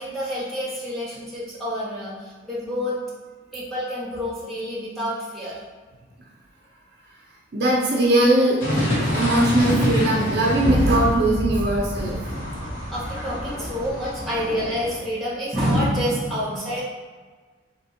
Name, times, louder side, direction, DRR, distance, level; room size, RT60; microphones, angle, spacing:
voice 1, 0.0-3.0 3.5-5.6 12.9-16.8, equal, ahead, -9 dB, 1.3 m, -28 dB
voice 2, 7.5-12.2 14.5-14.6, right 1 dB, 55° right, -3 dB, 0.6 m, -20 dB
sound 1, 8.6-15.0, left 1 dB, 45° left, 1.3 m, -27 dB
3.5 x 3.0 x 4.3 m, 1.4 s
head